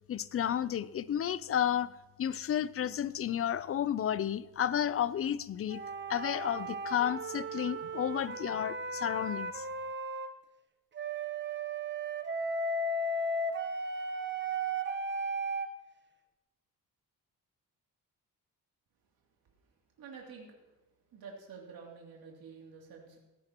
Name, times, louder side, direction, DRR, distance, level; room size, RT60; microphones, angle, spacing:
voice 1, 0.1-1.9 2.2-5.8 6.1-9.7, left 10 dB, 40° left, 0.4 m, -32 dB
sound 1, 5.7-10.3 10.9-15.7, right 2 dB, 30° right, 1.1 m, -35 dB
voice 2, 20.0-20.6 21.1-23.2, right 5 dB, 75° right, 2.9 m, -49 dB
16.0 x 14.0 x 3.0 m
cardioid pair, 125°, 36 cm